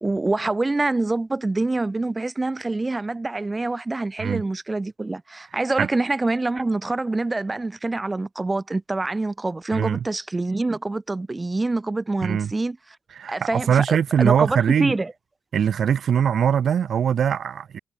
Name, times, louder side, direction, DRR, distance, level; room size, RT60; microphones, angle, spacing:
voice 1, 0.0-12.8 13.3-15.1, right 2 dB, 20° right, 2.5 m, -26 dB
voice 2, 12.2-12.5 13.2-14.9 15.5-17.8, right 8 dB, 55° right, 1.8 m, -21 dB
cardioid pair, 90°, 0 cm